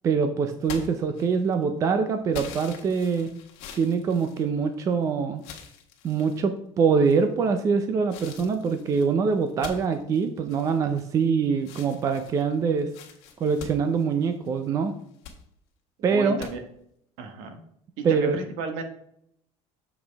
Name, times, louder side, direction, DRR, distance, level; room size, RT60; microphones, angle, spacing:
voice 1, 0.0-3.3 3.8-5.4 6.0-12.9 13.4-14.9 16.0-16.4 18.0-18.4, right 5 dB, 25° right, 8 dB, 0.4 m, -24 dB
sound 1, 0.6-1.6 2.3-4.9 5.4-6.4 7.0-7.5 8.1-11.3 11.6-14.6 15.0-15.4 16.4-16.5, left 7 dB, 75° left, 1.4 m, -44 dB
voice 2, 16.0-16.6 17.2-17.6 18.0-18.8, right 4 dB, 70° right, 7 dB, 1.3 m, -34 dB
7.0 x 5.2 x 3.4 m, 0.72 s
cardioid pair, 170°, 12 cm